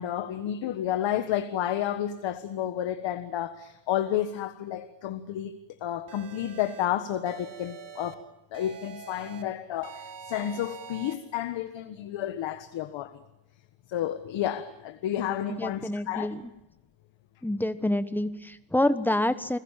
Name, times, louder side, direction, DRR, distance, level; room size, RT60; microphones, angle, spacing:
voice 1, 0.0-8.2 8.5-13.2 13.9-16.3, left 11 dB, 75° left, 1.6 m, -31 dB
sound 1, 6.1-6.9 7.3-8.1 8.5-9.4 9.8-11.1, right 7 dB, 45° right, 3.1 m, -44 dB
voice 2, 15.5-16.4 17.4-19.6, left 1 dB, 5° left, 1.2 m, -27 dB
30.0 x 20.5 x 7.5 m
cardioid pair, 150°, 46 cm